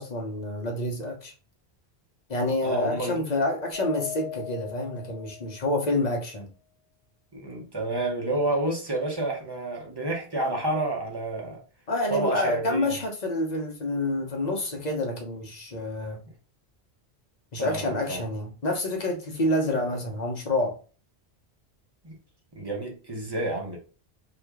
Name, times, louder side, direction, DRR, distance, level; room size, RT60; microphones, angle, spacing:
voice 1, 0.0-1.3 2.3-6.5 11.9-16.2 17.5-20.8, left 1 dB, 45° left, 0.8 m, -28 dB
voice 2, 2.6-3.2 7.3-11.6 12.1-13.0 17.6-18.2 22.0-22.1 22.6-23.8, right 2 dB, 25° right, 0.8 m, -29 dB
Mallet percussion, 3.7-6.0, left 10 dB, 55° right, 1.4 m, -39 dB
2.9 x 2.4 x 3.5 m
omnidirectional pair, 1.1 m